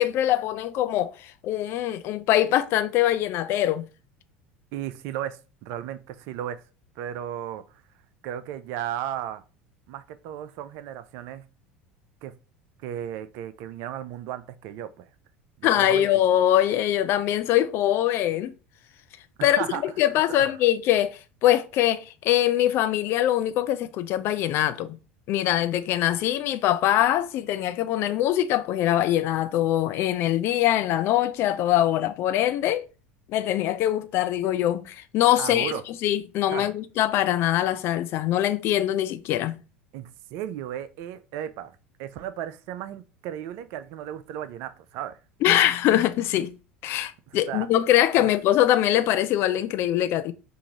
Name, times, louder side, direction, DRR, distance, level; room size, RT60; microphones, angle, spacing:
voice 1, 0.0-3.9 15.6-18.5 19.4-25.0 25.3-32.9 33.3-39.6 45.4-46.5 46.8-50.3, left 12 dB, 45° left, 0.3 m, -23 dB
voice 2, 4.7-6.6 7.0-7.8 8.2-9.4 9.9-11.5 12.2-12.3 12.8-15.1 15.6-16.1 19.4-19.8 20.3-20.5 35.4-35.8 36.5-36.7 39.9-41.7 42.0-45.2 47.3-47.7 48.2-48.3, right 11 dB, 50° right, 0.4 m, -35 dB
4.6 x 2.5 x 2.8 m
figure-of-eight pair, 70°, 6 cm